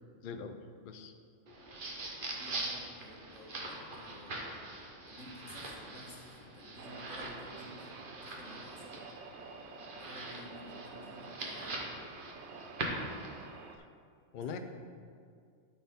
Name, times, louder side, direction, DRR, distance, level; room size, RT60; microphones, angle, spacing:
voice 1, 0.2-0.6 0.8-1.1 13.8-13.9 14.3-14.6, left 6 dB, 55° left, 7 dB, 0.6 m, -41 dB
sound 1, 1.5-13.5, right 2 dB, 45° right, 1.1 m, -43 dB
voice 2, 2.2-7.9 8.2-9.0 9.9-11.9 14.4-14.6, left 1 dB, 80° left, -4 dB, 1.8 m, -53 dB
sound 2, 6.8-13.8, right 4 dB, 65° right, 0.8 m, -49 dB
12.5 x 4.3 x 3.6 m, 2.2 s
omnidirectional pair, 1.3 m